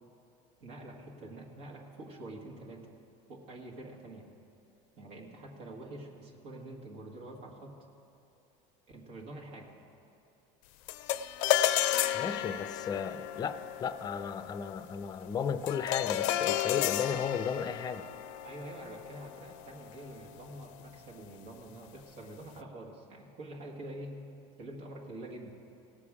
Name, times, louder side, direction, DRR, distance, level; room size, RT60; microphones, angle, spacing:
voice 1, 0.6-3.0 3.3-4.3 5.0-7.8 8.9-9.7 18.4-24.2 24.6-25.5, right 1 dB, 70° right, -1 dB, 1.7 m, -46 dB
sound 1, 10.9-20.4, left 12 dB, 80° left, 0.5 m, -33 dB
voice 2, 12.1-18.1, left 7 dB, 25° left, 12 dB, 0.5 m, -35 dB
17.5 x 6.9 x 4.9 m, 2.8 s
supercardioid pair, 130°, 16 cm